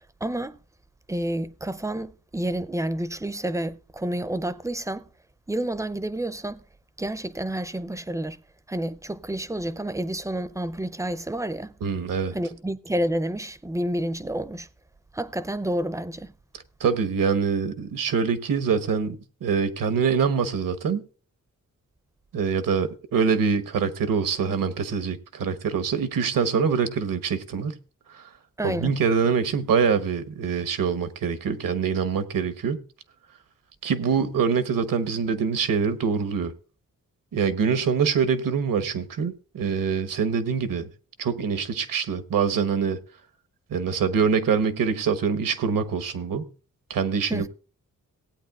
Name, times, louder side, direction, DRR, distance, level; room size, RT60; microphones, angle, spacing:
voice 1, 0.2-0.6 1.1-5.1 5.5-6.6 7.0-8.4 8.7-11.7 12.3-14.7 15.1-16.3 28.6-28.9 47.3-47.5, right 1 dB, 10° right, 0.5 m, -29 dB
voice 2, 11.8-12.3 16.8-21.0 22.3-27.8 28.1-28.3 28.6-32.8 33.8-36.5 37.3-40.9 41.2-43.0 43.7-46.5 46.9-47.5, right 6 dB, 80° right, 1.1 m, -24 dB
18.0 x 8.8 x 2.4 m
wide cardioid pair, 125°, 33 cm